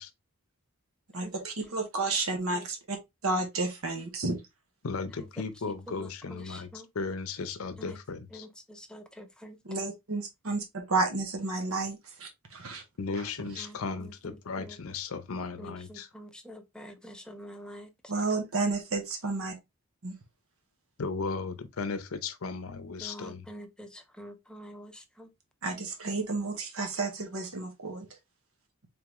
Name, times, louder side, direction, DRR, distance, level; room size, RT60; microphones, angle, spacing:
voice 1, 1.1-3.0 3.2-4.4 9.7-12.8 13.2-13.3 18.1-19.5 20.0-20.1 25.6-28.1, right 3 dB, 75° right, 1.0 m, -31 dB
voice 2, 4.8-6.7 7.0-8.5 13.0-16.1 21.0-23.5, left 4 dB, 75° left, 0.6 m, -35 dB
voice 3, 5.7-6.9 7.8-8.0 8.3-9.6 13.6-14.8 15.6-17.9 23.0-25.3, equal, 5° left, 0.6 m, -47 dB
3.8 x 3.6 x 2.9 m
head